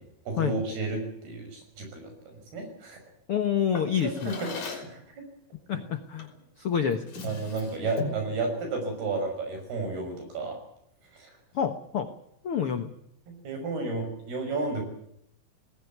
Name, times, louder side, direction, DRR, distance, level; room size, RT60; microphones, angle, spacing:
voice 1, 0.3-3.0 4.0-5.0 7.2-10.6 11.1-11.3 13.3-14.8, right 3 dB, 75° right, 5 dB, 8.0 m, -32 dB
voice 2, 3.3-4.4 5.7-6.3 6.6-7.0 11.5-12.1 12.4-12.9, left 8 dB, 70° left, 9 dB, 1.3 m, -27 dB
Drawer open or close, 3.7-5.0 6.2-6.4 6.8-8.3, left 3 dB, 50° left, 4.9 m, -38 dB
20.0 x 17.0 x 9.6 m, 0.74 s
omnidirectional pair, 4.6 m